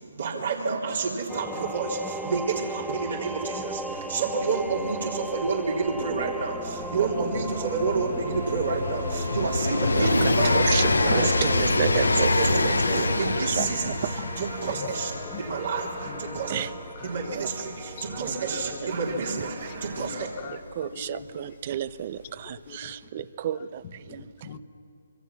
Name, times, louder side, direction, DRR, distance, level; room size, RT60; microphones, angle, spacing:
voice 1, 0.0-15.1 15.4-16.5 17.0-20.3, right 4 dB, 65° right, -2 dB, 3.5 m, -29 dB
sound 1, 1.3-20.6, right 2 dB, ahead, 0.7 m, -38 dB
Train, 3.7-3.8 4.0-20.6 21.6-21.7, left 2 dB, 90° left, 1.3 m, -27 dB
voice 2, 11.1-13.1 13.6-13.7 16.5-16.7 17.3-17.5 20.8-23.8 24.1-24.2, right 10 dB, 40° right, 17 dB, 0.7 m, -31 dB
voice 3, 14.7-15.6 16.0-17.5 18.0-19.1 19.7-21.6 22.4-22.9 23.5-24.6, left 7 dB, 35° left, 9 dB, 1.5 m, -42 dB
25.0 x 25.0 x 6.1 m, 2.6 s
figure-of-eight pair, 145°, 0 cm